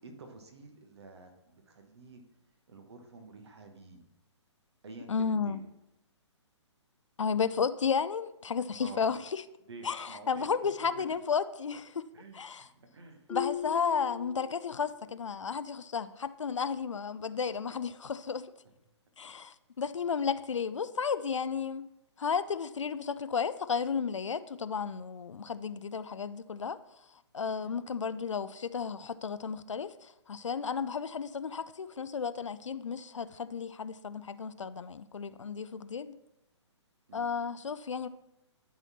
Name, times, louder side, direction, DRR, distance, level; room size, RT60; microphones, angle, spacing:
voice 1, 0.0-2.2 2.7-4.0 4.8-5.6 8.8-9.1 9.6-10.5 10.8-11.0 12.1-13.4 27.6-27.8 37.1-37.3, right 3 dB, 60° right, 1.4 m, -50 dB
voice 2, 5.1-5.6 7.2-9.4 9.8-12.0 12.3-12.7 13.3-18.5 19.2-21.9 22.2-26.8 27.3-36.1 37.1-38.1, left 6 dB, 80° left, 0.4 m, -33 dB
Marimba xylophone, 13.3-15.0, left 10 dB, 10° left, 0.5 m, -38 dB
11.0 x 4.2 x 4.2 m
figure-of-eight pair, 130°, 15 cm